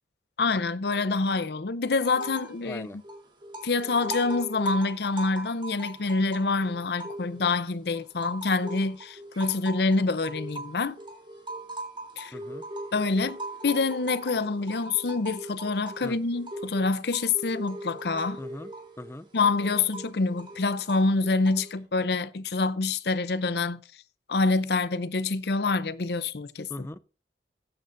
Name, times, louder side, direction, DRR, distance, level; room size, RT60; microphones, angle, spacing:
voice 1, 0.4-3.0 3.6-11.0 12.2-12.3 12.9-13.4 13.6-18.4 19.3-23.8 24.3-26.9, left 3 dB, 65° left, 0.7 m, -26 dB
sound 1, 2.0-2.6 2.9-7.6 7.9-21.8, right 1 dB, 30° right, 3.3 m, -40 dB
voice 2, 2.6-3.0 12.3-12.6 16.0-16.2 18.4-18.7 19.0-19.3 26.7-27.0, left 1 dB, 15° left, 0.4 m, -39 dB
15.0 x 8.8 x 2.6 m
head